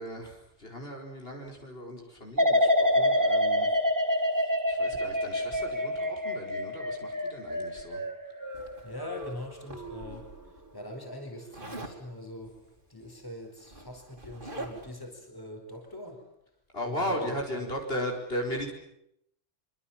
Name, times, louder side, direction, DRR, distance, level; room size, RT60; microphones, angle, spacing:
voice 1, 0.0-3.7 4.7-8.0 16.7-18.7, equal, 50° left, 0 dB, 5.1 m, -36 dB
sound 1, 2.4-9.3 9.7-10.2, left 1 dB, 15° right, 2.3 m, -27 dB
Zipper (clothing), 8.5-10.2 11.5-12.0 13.2-13.3 13.6-15.0, right 2 dB, 45° right, 3.7 m, -43 dB
voice 2, 8.8-10.3 10.7-12.6 12.9-16.3 16.8-17.7, left 1 dB, 15° left, 3 dB, 4.8 m, -42 dB
25.0 x 25.0 x 7.4 m, 0.76 s
omnidirectional pair, 1.3 m